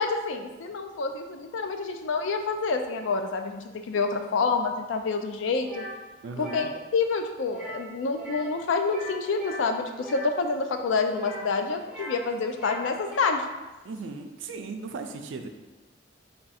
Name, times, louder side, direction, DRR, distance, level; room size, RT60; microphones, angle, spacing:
voice 1, 0.0-5.8 6.4-13.4, left 4 dB, 80° left, 6 dB, 0.4 m, -28 dB
sound 1, 5.6-6.0 6.3-6.7 7.5-7.9 8.1-8.5 8.8-10.3 11.1-12.2 12.5-13.4, equal, 5° right, 0.5 m, -40 dB
voice 2, 6.2-6.7 13.8-15.5, right 4 dB, 75° right, 6 dB, 0.4 m, -37 dB
3.6 x 2.3 x 4.1 m, 1.1 s
head